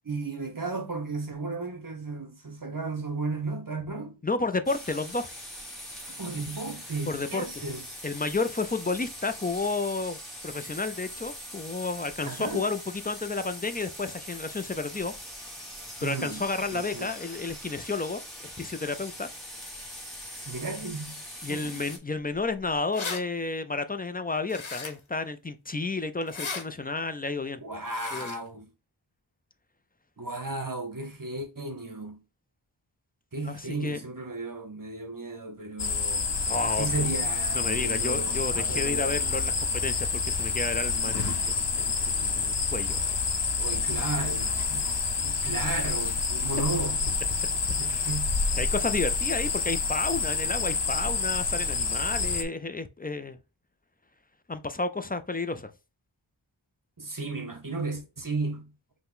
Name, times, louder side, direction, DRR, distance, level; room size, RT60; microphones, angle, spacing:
voice 1, 0.0-4.2 6.1-7.9 12.2-12.6 16.0-17.1 20.5-21.8 27.6-28.7 30.2-32.2 33.3-36.2 36.8-39.2 43.6-47.0 47.8-48.4 57.0-58.7, right 3 dB, 45° right, 0.9 m, -34 dB
voice 2, 4.2-5.3 7.1-7.4 8.0-10.2 10.4-15.1 16.0-19.3 21.4-27.6 28.1-28.4 33.4-34.0 36.5-37.1 37.5-43.2 47.9-48.1 48.6-53.4 54.5-55.7, left 3 dB, 20° left, 0.4 m, -31 dB
sound 1, 4.7-22.0, equal, ahead, 1.5 m, -42 dB
sound 2, 22.5-22.6 22.7-23.2 24.5-25.1 26.2-26.6 27.8-28.4, left 4 dB, 85° left, 0.9 m, -36 dB
sound 3, 35.8-52.4, left 5 dB, 60° left, 0.7 m, -28 dB
5.6 x 2.1 x 3.7 m
wide cardioid pair, 50°, 46 cm